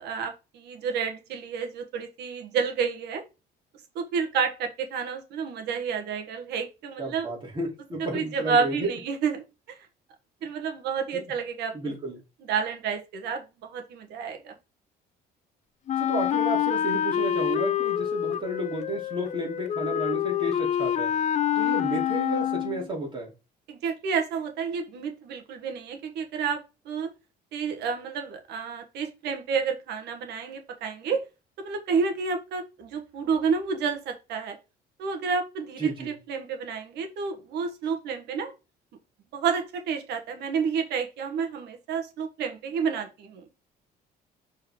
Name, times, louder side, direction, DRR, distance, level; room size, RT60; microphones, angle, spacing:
voice 1, 0.0-3.2 3.9-7.3 8.1-9.8 10.4-11.9 12.5-14.6 23.7-27.1 27.5-31.2 31.6-34.6 35.0-38.5 39.3-43.5, right 6 dB, 80° right, 1.6 m, -30 dB
voice 2, 7.0-8.9 11.1-11.2 11.7-12.2 16.0-21.1 21.6-23.3 35.8-36.1, right 2 dB, 30° right, 3.6 m, -32 dB
Wind instrument woodwind instrument, 15.9-22.9, left 10 dB, 45° left, 0.5 m, -27 dB
6.5 x 4.3 x 3.8 m
cardioid pair, 110°, 17 cm